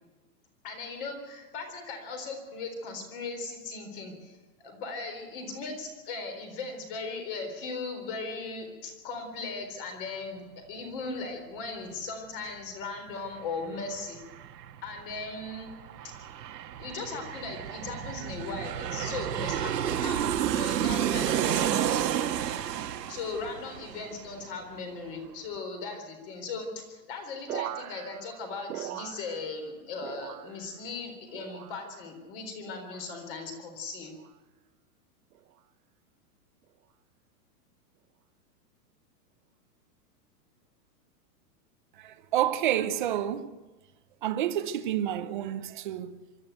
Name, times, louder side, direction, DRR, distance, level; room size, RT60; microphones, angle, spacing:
voice 1, 0.6-14.2 14.8-15.7 16.8-21.9 23.1-34.2, left 3 dB, 35° left, 4.0 m, -38 dB
Aircraft, 13.1-13.2 13.5-24.8 25.1-25.2, right 10 dB, 85° right, 1.6 m, -31 dB
sound 1, 27.5-29.7 30.0-30.8 31.3-32.0 32.7-33.1 34.0-34.4 35.3-35.6, right 12 dB, 65° right, 1.0 m, -41 dB
voice 2, 42.0-43.6 44.2-46.2, right 11 dB, 30° right, 0.7 m, -29 dB
24.5 x 12.5 x 9.2 m
supercardioid pair, 180°, 48 cm